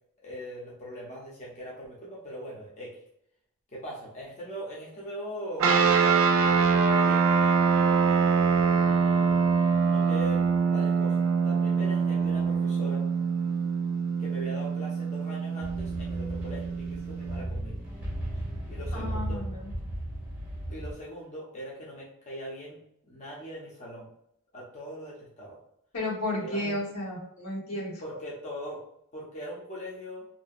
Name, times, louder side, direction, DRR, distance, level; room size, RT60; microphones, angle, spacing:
voice 1, 0.2-3.0 3.7-7.3 8.7-13.0 14.2-17.8 18.7-19.4 20.7-22.8 23.1-24.1 24.5-25.6 26.4-26.8 28.0-28.8 29.1-30.3, equal, 30° left, -4 dB, 0.5 m, -41 dB
sound 1, 5.6-17.4, right 5 dB, 60° right, 0.4 m, -24 dB
sound 2, 15.6-20.9, right 1 dB, 10° right, 0.6 m, -35 dB
voice 2, 18.9-19.7 25.9-28.0, left 1 dB, 75° left, -3 dB, 0.9 m, -33 dB
2.6 x 2.1 x 2.3 m, 0.74 s
head